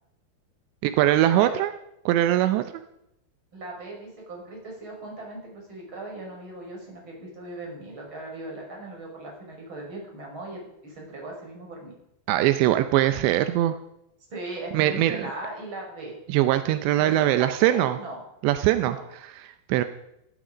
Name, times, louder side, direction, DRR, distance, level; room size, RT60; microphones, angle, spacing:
voice 1, 0.8-1.7 2.1-2.6 12.3-13.8 14.7-15.3 16.3-18.0 18.4-19.8, right 13 dB, 85° right, 10 dB, 3.0 m, -22 dB
voice 2, 3.5-11.9 14.3-16.1 17.0-18.2 18.8-19.0, right 2 dB, 30° right, -1 dB, 6.0 m, -38 dB
19.0 x 13.0 x 5.1 m, 0.82 s
omnidirectional pair, 5.0 m